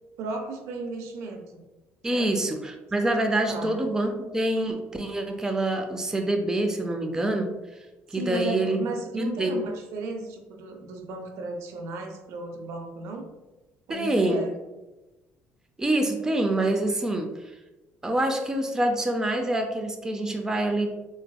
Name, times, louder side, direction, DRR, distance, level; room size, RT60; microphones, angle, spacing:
voice 1, 0.2-1.6 2.1-2.4 3.5-3.8 8.1-13.3 13.9-14.6, right 2 dB, 75° right, 4 dB, 0.5 m, -35 dB
voice 2, 2.0-7.5 8.1-8.8 9.1-9.6 13.9-14.4 15.8-17.3 18.0-20.9, right 1 dB, 10° right, 4 dB, 0.4 m, -26 dB
3.9 x 2.5 x 2.2 m, 1.1 s
cardioid pair, 100°, 5 cm